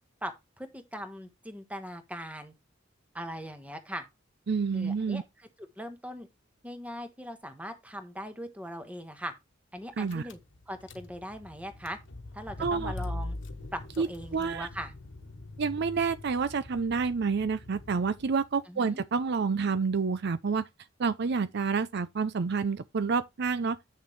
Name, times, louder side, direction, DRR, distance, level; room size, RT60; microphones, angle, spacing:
voice 1, 0.6-2.5 3.1-4.0 4.7-6.3 6.6-9.3 9.7-10.4 10.7-12.0 12.3-13.4 13.7-14.9 18.7-19.0, equal, 5° right, 1.4 m, -40 dB
voice 2, 4.5-5.2 10.0-10.2 12.6-12.9 14.0-14.1 14.3-14.7 15.6-20.7 21.0-23.8, right 5 dB, 55° right, 0.5 m, -28 dB
Car / Engine, 9.8-9.9 10.1-18.4, left 2 dB, 65° left, 1.2 m, -42 dB
8.7 x 6.5 x 3.2 m
head